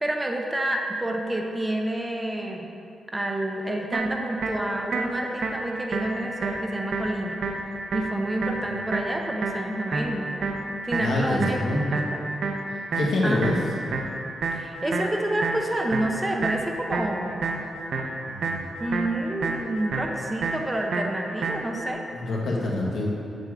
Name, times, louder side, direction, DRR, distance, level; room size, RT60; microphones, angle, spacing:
voice 1, 0.0-2.7 3.1-7.4 7.9-10.5 10.8-12.2 13.2-13.4 14.5-17.4 18.8-22.0, right 1 dB, 10° right, 2 dB, 0.5 m, -29 dB
sound 1, 3.9-21.9, right 3 dB, 60° right, 0.7 m, -31 dB
voice 2, 11.0-11.9 13.0-13.6 18.2-18.7 22.1-23.1, left 2 dB, 75° left, -4 dB, 1.7 m, -26 dB
8.0 x 7.3 x 3.6 m, 2.6 s
wide cardioid pair, 170°, 0 cm